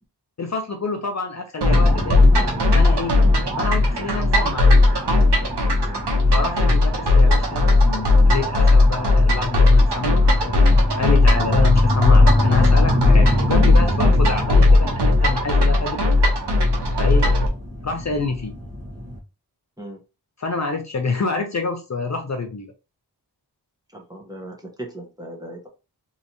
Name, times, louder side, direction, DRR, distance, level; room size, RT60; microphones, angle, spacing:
voice 1, 0.4-2.4 2.7-3.2 3.6-4.7 6.3-16.1 17.0-17.3 17.8-18.6 20.4-22.7, left 4 dB, 40° left, 0.6 m, -27 dB
sound 1, 1.6-17.5, left 2 dB, 75° right, 1.0 m, -16 dB
sound 2, 1.7-19.2, left 1 dB, 40° right, 1.5 m, -28 dB
voice 2, 23.9-25.7, right 1 dB, 10° right, 1.0 m, -37 dB
3.2 x 2.8 x 2.8 m
wide cardioid pair, 75°, 41 cm